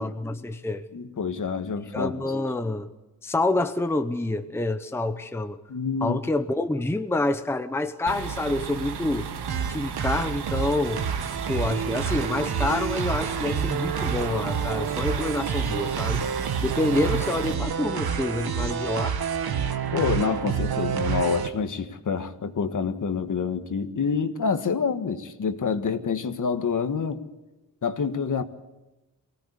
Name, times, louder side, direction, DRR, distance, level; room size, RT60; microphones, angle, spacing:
voice 1, 0.0-0.8 1.9-2.9 3.2-5.6 6.0-9.3 9.7-11.0 11.5-16.3 16.6-19.2, left 2 dB, 5° left, 8 dB, 0.9 m, -27 dB
voice 2, 0.9-2.2 5.7-6.2 19.9-27.2 27.8-28.4, left 5 dB, 50° left, 9 dB, 1.6 m, -27 dB
sound 1, 8.1-17.5, right 7 dB, 90° right, 2.0 m, -34 dB
sound 2, 9.5-21.5, right 7 dB, 70° right, 1.7 m, -28 dB
24.5 x 17.5 x 8.3 m, 1.1 s
wide cardioid pair, 130°, 39 cm